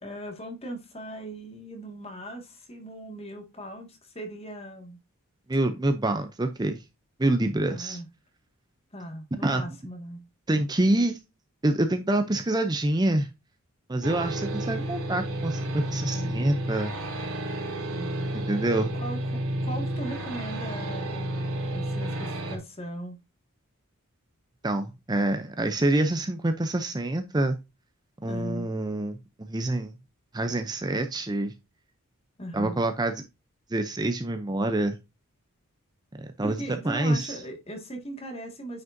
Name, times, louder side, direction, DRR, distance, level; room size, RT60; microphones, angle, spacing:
voice 1, 0.0-5.0 7.6-8.1 8.9-10.2 16.1-16.4 17.9-18.4 18.9-23.2 28.3-28.7 32.4-32.8 36.4-38.8, right 1 dB, 25° left, 1.9 m, -39 dB
voice 2, 5.5-6.8 7.2-8.0 9.4-9.6 10.5-11.2 11.6-13.3 13.9-16.9 18.4-18.9 24.6-27.6 28.2-29.2 29.5-29.9 30.3-31.5 32.5-33.2 33.7-35.0 36.2-37.4, right 1 dB, 20° right, 0.5 m, -26 dB
sound 1, 14.0-22.6, right 1 dB, 85° right, 3.2 m, -31 dB
9.3 x 5.3 x 2.7 m
head